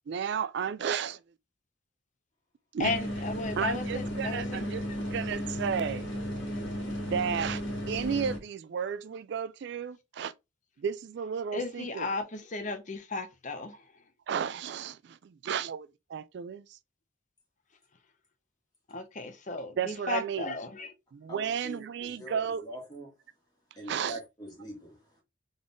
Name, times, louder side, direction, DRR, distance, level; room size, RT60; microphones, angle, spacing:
voice 1, 0.1-1.2 2.7-2.9 3.6-4.8 5.1-6.1 7.1-7.6 7.9-10.3 10.8-12.1 14.3-16.8 19.8-20.5 21.1-22.6 23.9-24.2, right 7 dB, 60° right, 0.3 m, -33 dB
sound 1, 2.8-8.4, equal, 65° left, 1.8 m, -34 dB
voice 2, 2.8-4.7 11.5-13.8 18.9-20.9, left 3 dB, 40° left, 0.8 m, -35 dB
voice 3, 21.3-23.1 23.8-25.2, right 1 dB, 20° left, 1.8 m, -44 dB
3.9 x 3.7 x 3.5 m
head